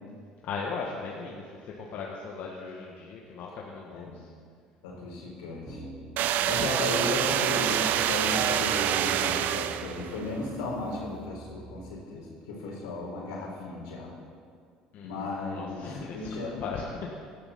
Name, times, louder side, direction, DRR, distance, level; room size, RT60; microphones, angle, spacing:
voice 1, 0.4-4.3 6.3-6.6 14.9-17.1, left 5 dB, 60° left, -2 dB, 1.7 m, -38 dB
voice 2, 4.8-5.8 6.4-14.1 15.0-15.8 16.1-16.6, left 2 dB, 85° left, -2 dB, 3.8 m, -35 dB
sound 1, 5.7-11.9, right 2 dB, 45° right, 4.6 m, -47 dB
sound 2, 6.2-10.2, right 11 dB, 60° right, 0.6 m, -26 dB
17.5 x 12.0 x 4.3 m, 2.1 s
hypercardioid pair, 70°, 3 cm